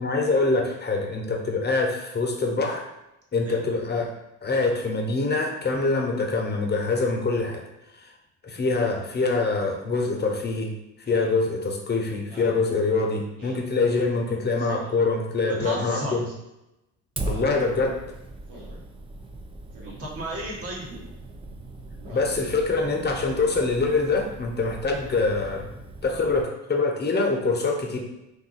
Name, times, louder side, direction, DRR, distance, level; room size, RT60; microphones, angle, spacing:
voice 1, 0.0-2.9 3.3-4.1 4.4-7.6 8.0-8.1 8.4-10.7 11.1-16.2 17.2-18.0 22.1-25.7 26.0-28.0, left 3 dB, 30° left, 1 dB, 0.8 m, -24 dB
Speech synthesizer, 11.1-11.4 12.2-12.6 13.4-13.7 14.6-15.0 15.9-16.3 17.2-17.5 18.5-18.8 19.7-20.0 20.8-21.1 22.0-22.3 23.1-23.5, right 1 dB, 70° right, 1.3 m, -45 dB
voice 2, 15.5-16.2 19.8-20.9, right 1 dB, 40° right, -2 dB, 1.2 m, -33 dB
Fire, 17.2-26.4, right 2 dB, 15° right, 0.4 m, -39 dB
2.6 x 2.5 x 3.9 m, 0.91 s
supercardioid pair, 70°, 36 cm